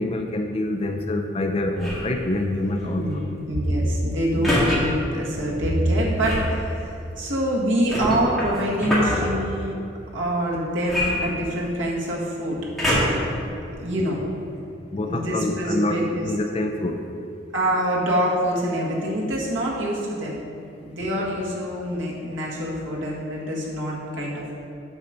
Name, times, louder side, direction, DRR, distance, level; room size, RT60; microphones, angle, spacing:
voice 1, 0.0-3.0 14.0-14.1 14.9-17.0, left 1 dB, 30° left, 5 dB, 0.4 m, -26 dB
sound 1, 1.7-2.1 4.4-4.8 6.2-6.5 7.9-9.2 10.9-11.8 12.8-13.3 14.0-14.1, left 1 dB, ahead, 2.0 m, -24 dB
voice 2, 2.8-3.2 3.5-9.7 10.1-12.6 13.2-13.4 13.8-14.2 15.1-16.3 17.5-20.4 20.8-24.5, equal, 85° right, -4 dB, 1.7 m, -25 dB
8.0 x 5.7 x 5.1 m, 2.7 s
head